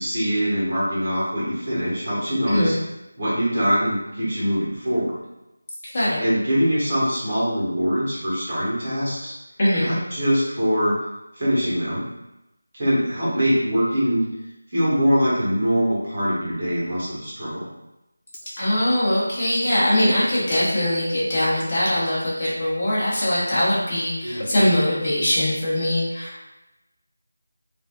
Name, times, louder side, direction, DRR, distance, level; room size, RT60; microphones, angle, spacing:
voice 1, 0.0-2.7 3.2-5.1 6.2-9.3 9.8-10.9 11.3-12.0 12.7-14.2 14.7-17.7 24.2-24.4, equal, 30° right, -8 dB, 1.3 m, -23 dB
voice 2, 9.6-10.0 18.6-26.5, left 1 dB, 25° left, -8 dB, 1.1 m, -22 dB
4.9 x 2.6 x 2.4 m, 0.93 s
figure-of-eight pair, 175°, 0 cm